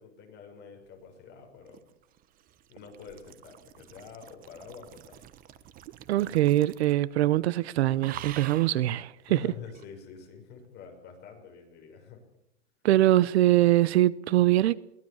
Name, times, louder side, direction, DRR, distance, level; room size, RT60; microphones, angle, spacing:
voice 1, 0.0-1.9 2.7-5.2 9.3-12.2, left 6 dB, 25° left, 6.2 m, -47 dB
sound 1, 1.4-7.1 7.4-7.7 8.0-8.8 9.7-9.9, right 12 dB, 25° right, 1.2 m, -46 dB
voice 2, 6.1-9.4 12.8-14.8, right 15 dB, 60° right, 0.8 m, -23 dB
23.0 x 19.0 x 7.2 m
supercardioid pair, 155°, 36 cm